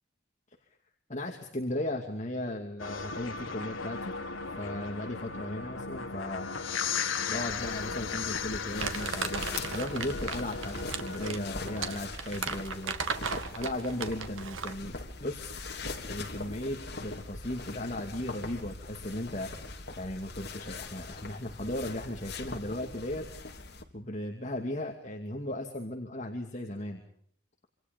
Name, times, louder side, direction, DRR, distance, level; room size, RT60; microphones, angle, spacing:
voice 1, 1.1-4.1 4.6-6.5 7.3-12.9 13.6-14.9 15.2-15.6 16.1-19.5 20.0-23.2 23.9-27.0, left 1 dB, 35° left, 2 dB, 2.5 m, -36 dB
sound 1, 2.8-12.0, left 5 dB, 85° left, 1.5 m, -36 dB
sound 2, 7.3-23.8, left 3 dB, 55° left, 3.5 m, -42 dB
Crumpling crinkling, 8.8-14.8, right 5 dB, 85° right, 2.0 m, -36 dB
27.0 x 26.5 x 5.3 m, 0.66 s
head